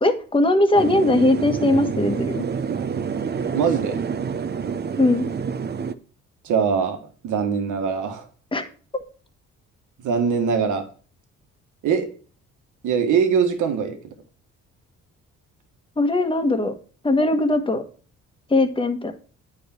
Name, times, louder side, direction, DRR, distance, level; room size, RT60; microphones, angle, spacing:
voice 1, 0.0-2.4 5.0-5.3 8.5-8.6 8.9-9.0 16.0-16.7 17.0-17.8 18.5-19.1, left 2 dB, 15° left, 7 dB, 1.3 m, -20 dB
sound 1, 0.8-5.9, right 6 dB, 35° right, 0.6 m, -27 dB
voice 2, 3.5-4.0 6.4-8.2 10.0-10.8 11.8-12.1 12.8-14.0, right 6 dB, 80° right, 5 dB, 1.6 m, -22 dB
9.3 x 4.9 x 4.4 m, 0.39 s
cardioid pair, 90°, 30 cm